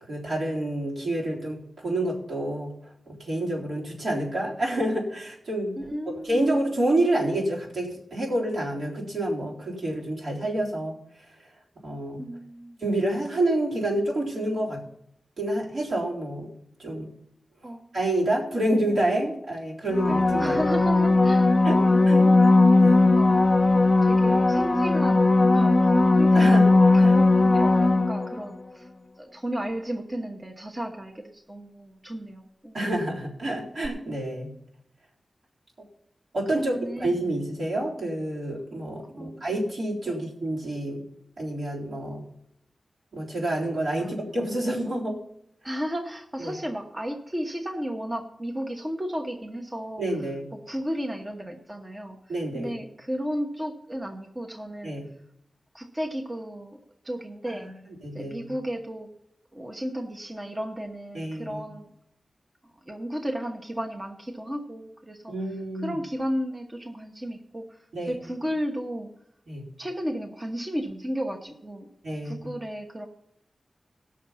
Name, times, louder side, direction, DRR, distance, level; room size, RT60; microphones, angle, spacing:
voice 1, 0.1-2.7 3.1-5.8 6.2-11.0 11.8-12.2 12.8-14.8 15.4-16.5 16.8-17.1 17.9-20.6 21.6-22.2 22.8-23.0 26.3-26.7 27.0-27.1 32.7-34.5 36.3-41.0 41.4-42.2 43.1-45.2 46.4-46.5 50.0-50.5 52.3-52.7 54.8-55.1 57.5-57.7 58.0-58.5 61.1-61.7 65.3-66.0 67.9-68.2 69.5-69.7 72.0-72.5, right 1 dB, 75° right, -5 dB, 3.9 m, -28 dB
voice 2, 5.8-6.5 12.2-12.8 17.6-17.9 20.4-21.5 21.8-22.5 23.1-23.4 23.7-25.7 26.2-28.9 29.2-32.8 36.5-37.2 39.0-39.4 40.1-40.2 44.0-44.1 45.6-50.0 50.5-52.2 52.5-55.0 55.7-57.7 58.1-59.1 59.5-61.9 62.8-65.3 65.7-67.8 68.1-69.1 69.8-73.1, equal, 25° right, 3 dB, 1.1 m, -34 dB
sound 1, 19.9-28.5 33.8-33.9, left 2 dB, 30° left, 0.8 m, -18 dB
17.5 x 6.5 x 5.7 m, 0.77 s
wide cardioid pair, 70°, 0 cm